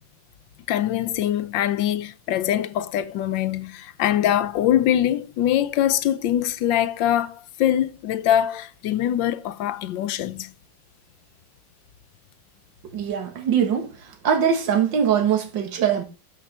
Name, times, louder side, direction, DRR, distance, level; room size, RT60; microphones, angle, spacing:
voice 1, 0.7-10.5, left 11 dB, 80° left, 1.4 m, -23 dB
voice 2, 12.9-13.9 14.2-16.0, right 8 dB, 75° right, 2.2 m, -22 dB
12.5 x 5.2 x 4.2 m
omnidirectional pair, 2.0 m